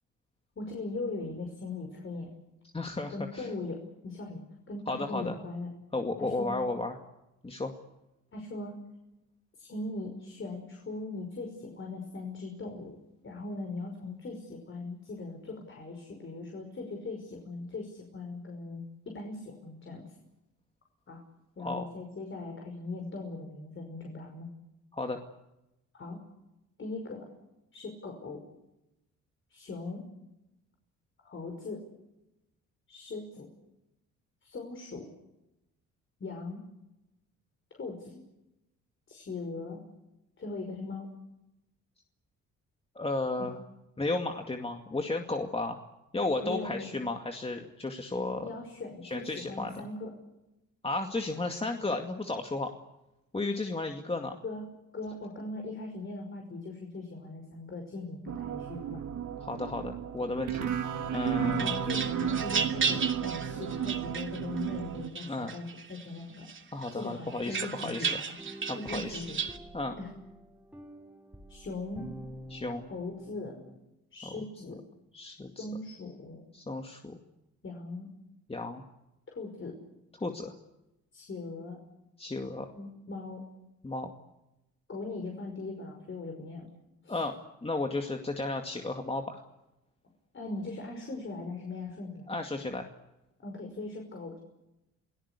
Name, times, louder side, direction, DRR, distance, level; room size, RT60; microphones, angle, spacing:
voice 1, 0.6-2.3 3.1-4.4 4.7-5.7 6.2-6.6 8.3-8.8 9.6-13.0 13.2-20.1 21.1-21.2 21.6-24.5 25.9-26.2 26.8-27.3 27.7-28.4 29.5-30.0 31.2-31.8 32.9-33.5 34.4-35.1 36.2-36.6 37.7-38.2 39.1-39.8 40.4-41.1 43.4-43.5 46.4-46.9 48.4-50.1 54.4-54.6 54.9-59.0 61.4-66.5 66.9-68.2 68.7-69.4 70.0-70.1 71.5-72.1 72.9-73.6 74.1-74.8 75.6-76.4 77.6-78.1 79.3-79.8 81.1-81.8 82.8-83.4 84.9-86.7 87.0-87.2 90.3-92.3 93.4-94.5, left 3 dB, 40° left, 2 dB, 5.6 m, -39 dB
voice 2, 2.7-3.5 4.9-5.4 5.9-7.0 7.4-7.7 21.6-21.9 24.9-25.2 43.0-43.6 44.0-45.8 46.1-48.5 49.0-49.7 50.8-52.7 53.3-54.4 59.4-60.7 61.1-61.8 65.3-65.5 66.7-68.2 68.7-69.3 69.7-70.0 72.5-72.8 75.1-75.7 76.5-77.2 78.5-78.8 80.2-80.5 82.2-82.7 83.8-84.1 87.1-87.4 87.6-89.4 92.3-92.9, left 2 dB, 20° left, 4 dB, 2.2 m, -33 dB
sound 1, 58.3-65.1, right 8 dB, 80° right, 2.2 m, -33 dB
sound 2, 61.1-64.7 65.2-66.1 66.5-69.6, right 6 dB, 40° right, 2.8 m, -34 dB
sound 3, 68.4-73.8, right 1 dB, 5° right, 4.3 m, -48 dB
29.0 x 18.0 x 8.4 m, 0.93 s
cardioid pair, 90°, 30 cm